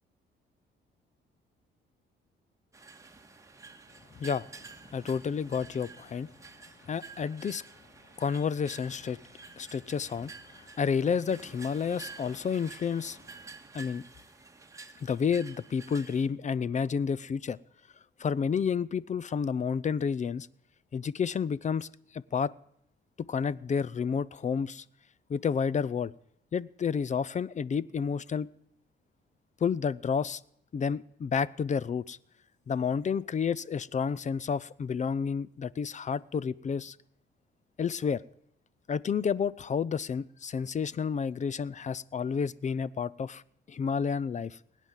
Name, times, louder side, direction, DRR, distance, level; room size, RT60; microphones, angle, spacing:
sound 1, 2.7-16.3, right 4 dB, 15° right, 1.9 m, -50 dB
voice 1, 4.9-6.3 6.9-7.6 8.2-9.2 9.6-13.2 13.7-14.0 15.0-17.6 18.2-20.5 20.9-21.9 22.1-22.5 23.3-24.8 25.3-26.1 26.5-28.5 29.6-30.4 30.7-32.2 32.7-37.0 37.8-38.2 38.9-43.4 43.7-44.6, left 6 dB, 35° left, 22 dB, 0.6 m, -30 dB
21.0 x 9.3 x 7.3 m, 0.75 s
cardioid pair, 90°, 20 cm